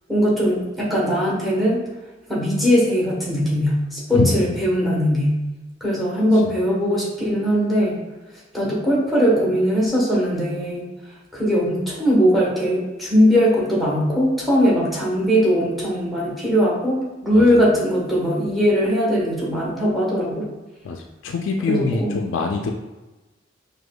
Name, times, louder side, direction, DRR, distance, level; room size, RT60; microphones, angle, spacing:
voice 1, 0.1-1.8 2.3-5.3 5.8-8.0 8.5-10.9 11.3-20.5 21.7-22.3, equal, ahead, -6 dB, 1.1 m, -20 dB
voice 2, 4.1-4.6 6.4-6.5 17.3-17.7 20.8-22.7, left 3 dB, 70° left, 2 dB, 0.4 m, -24 dB
5.9 x 2.7 x 2.2 m, 1.1 s
head